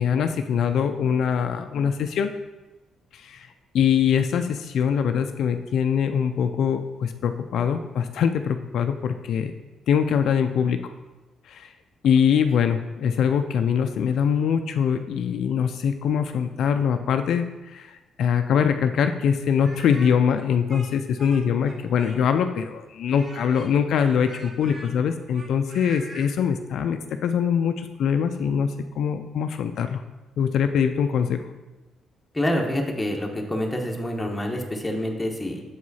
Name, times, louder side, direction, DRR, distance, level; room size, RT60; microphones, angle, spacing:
voice 1, 0.0-2.3 3.1-3.5 3.7-9.5 9.9-10.8 11.5-11.7 12.0-30.0 30.4-31.4, left 7 dB, 70° left, 7 dB, 0.3 m, -23 dB
Speech, 19.6-22.5 23.1-26.3, right 1 dB, 40° right, 1.2 m, -44 dB
voice 2, 32.3-35.6, left 1 dB, 10° left, 1 dB, 1.1 m, -27 dB
7.1 x 4.7 x 4.1 m, 1.1 s
cardioid pair, 90°, 0 cm